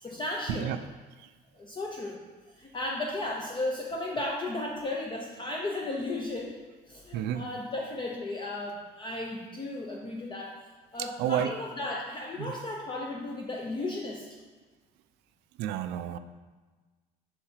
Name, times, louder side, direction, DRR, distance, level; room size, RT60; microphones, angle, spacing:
voice 1, 0.0-0.7 1.5-2.2 2.5-6.6 6.9-10.6 10.9-14.3, left 2 dB, 30° left, 0 dB, 0.7 m, -35 dB
voice 2, 7.1-7.5 11.0-11.5 12.4-12.6 15.6-16.2, right 10 dB, 90° right, 11 dB, 0.4 m, -31 dB
5.7 x 4.9 x 4.3 m, 1.3 s
cardioid pair, 110°, 17 cm